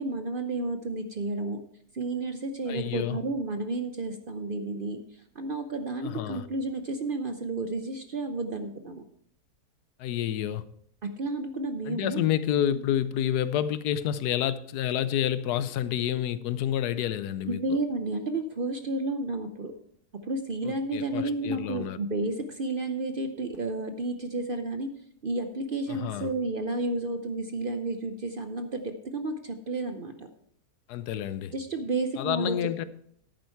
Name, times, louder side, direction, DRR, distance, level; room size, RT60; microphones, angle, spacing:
voice 1, 0.0-1.6 1.9-5.0 5.4-9.0 11.0-12.2 12.7-12.8 17.4-19.7 20.3-24.9 25.2-30.3 31.5-32.5, right 2 dB, 50° right, 0.7 m, -31 dB
voice 2, 2.7-3.2 6.0-6.5 10.0-10.6 11.9-17.8 20.6-22.0 25.9-26.3 30.9-31.5 32.2-32.9, left 10 dB, 90° left, 1.2 m, -29 dB
10.5 x 8.9 x 4.5 m
omnidirectional pair, 1.6 m